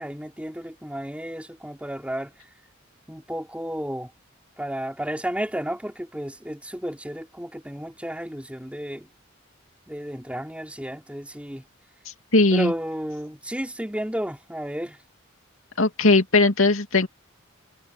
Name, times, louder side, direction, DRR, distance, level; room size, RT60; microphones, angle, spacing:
voice 1, 0.0-2.3 3.1-4.1 4.6-9.1 9.9-11.6 12.5-15.0, equal, 5° right, 3.5 m, -32 dB
voice 2, 12.3-12.7 15.8-17.1, left 3 dB, 80° left, 2.7 m, -18 dB
head